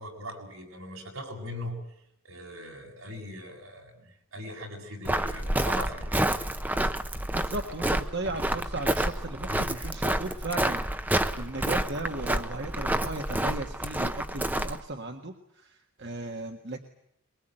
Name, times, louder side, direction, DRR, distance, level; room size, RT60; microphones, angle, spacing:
voice 1, 0.0-1.8 2.2-6.4 9.5-9.9, equal, 80° right, 2 dB, 6.7 m, -40 dB
Walk footsteps, 5.0-14.8, right 1 dB, 10° right, 0.9 m, -29 dB
voice 2, 7.3-16.8, right 2 dB, 55° right, 4 dB, 1.7 m, -36 dB
22.5 x 22.0 x 9.1 m, 0.76 s
head